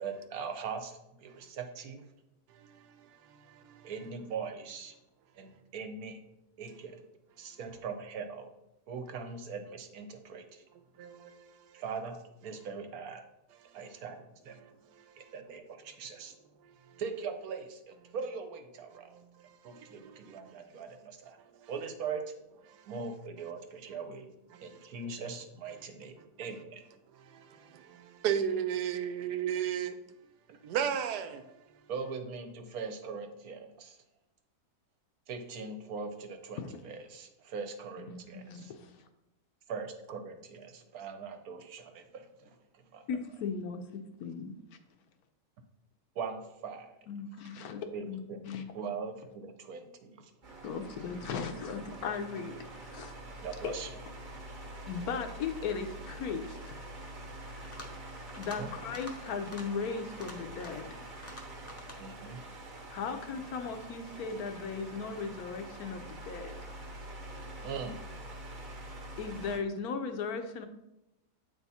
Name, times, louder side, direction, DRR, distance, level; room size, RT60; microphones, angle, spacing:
voice 1, 0.0-2.0 3.8-4.9 5.4-6.2 6.6-7.0 7.4-8.5 8.9-10.6 11.7-13.2 13.7-14.6 15.3-16.3 17.0-19.1 19.6-21.4 21.7-22.2 22.8-24.3 24.6-26.8 31.9-34.0 35.3-36.6 36.8-38.7 39.7-42.5 42.9-43.0 46.2-46.9 47.9-48.4 48.7-50.2 53.4-53.9 58.6-58.7 62.0-62.4 67.6-68.0, right 5 dB, 70° right, 1.2 m, -41 dB
voice 2, 2.5-3.9 11.0-11.8 13.7-14.0 14.6-15.3 15.9-16.0 16.6-17.0 19.0-20.6 21.5-21.7 22.7-22.9 24.5-24.9 26.2-26.3 27.1-27.4 28.2-30.0 30.6-31.4 31.7-31.8, right 9 dB, 90° right, 1.2 m, -36 dB
voice 3, 38.0-39.0 43.1-43.8 44.2-44.5 47.1-48.7 50.6-52.5 52.8-53.1 53.6-53.7 54.9-56.8 58.4-60.8 62.7-66.5 69.2-70.7, left 5 dB, 70° left, 1.1 m, -37 dB
sound 1, 50.4-69.6, right 1 dB, 35° right, 0.9 m, -46 dB
sound 2, 57.5-58.0 58.3-58.6 58.9-59.1 59.4-59.6 60.1-60.9 61.2-62.0, left 1 dB, 15° left, 0.5 m, -47 dB
8.1 x 3.5 x 4.1 m
omnidirectional pair, 1.7 m